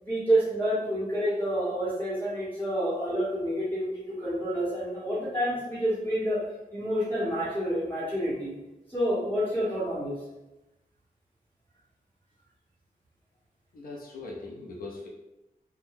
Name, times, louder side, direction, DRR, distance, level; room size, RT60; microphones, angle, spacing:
voice 1, 0.0-3.9 4.2-6.4 6.7-8.5 8.9-10.1, equal, 15° left, -10 dB, 1.5 m, -28 dB
voice 2, 13.7-15.1, left 3 dB, 80° left, -2 dB, 0.5 m, -40 dB
2.7 x 2.2 x 3.6 m, 0.99 s
wide cardioid pair, 170°, 15 cm